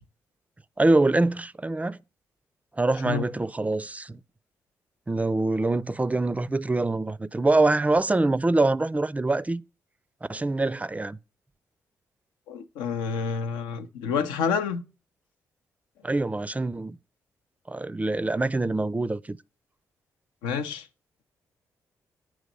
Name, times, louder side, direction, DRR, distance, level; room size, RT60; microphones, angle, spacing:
voice 1, 0.8-2.0 2.8-4.2 5.1-9.6 10.3-11.2 16.0-17.0 17.7-19.4, right 2 dB, 20° right, 0.4 m, -24 dB
voice 2, 12.5-14.8 20.4-20.9, left 6 dB, 85° left, 0.5 m, -28 dB
8.5 x 3.1 x 5.3 m
hypercardioid pair, 45°, 8 cm